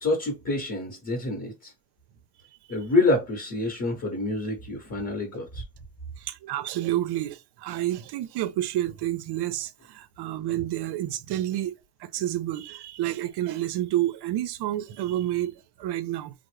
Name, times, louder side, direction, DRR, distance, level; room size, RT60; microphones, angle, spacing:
voice 1, 0.0-1.7 2.7-5.6, left 2 dB, 35° left, 0.9 m, -27 dB
voice 2, 6.2-11.7 12.0-16.3, right 13 dB, 65° right, 0.5 m, -29 dB
3.6 x 2.0 x 3.0 m
cardioid pair, 180°, 44 cm